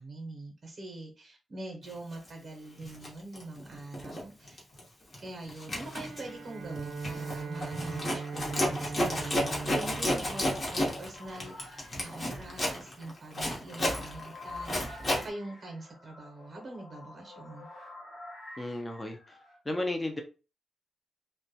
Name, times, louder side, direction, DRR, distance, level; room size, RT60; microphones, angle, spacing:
voice 1, 0.0-4.6 5.2-17.7, right 2 dB, 45° right, 0.7 m, -43 dB
Zipper (clothing), 2.1-2.3 2.8-4.2 4.5-4.8 5.1-15.3, left 1 dB, 40° left, 0.8 m, -32 dB
Bowed string instrument, 5.8-11.4, right 5 dB, 85° right, 0.4 m, -40 dB
sound 1, 6.2-19.6, left 2 dB, 90° left, 1.0 m, -51 dB
voice 2, 18.6-19.4 19.7-20.2, left 1 dB, 15° left, 0.4 m, -33 dB
2.2 x 2.1 x 2.6 m
wide cardioid pair, 135°, 0 cm